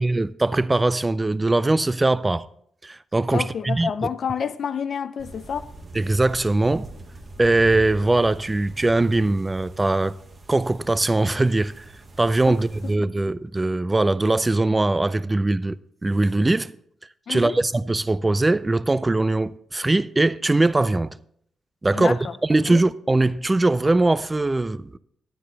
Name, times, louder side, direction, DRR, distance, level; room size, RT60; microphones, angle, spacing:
voice 1, 0.0-2.5 2.8-3.9 5.9-6.9 7.4-10.1 10.5-11.9 12.2-16.7 17.3-21.2 21.8-25.0, right 2 dB, 15° right, 0.4 m, -21 dB
voice 2, 3.3-5.7 12.5-12.6 17.3-17.6 21.9-22.3 22.7-22.8, left 7 dB, 55° left, 0.5 m, -28 dB
sound 1, 5.2-13.0, right 2 dB, 35° right, 1.2 m, -42 dB
11.5 x 10.0 x 4.0 m
wide cardioid pair, 145°, 0 cm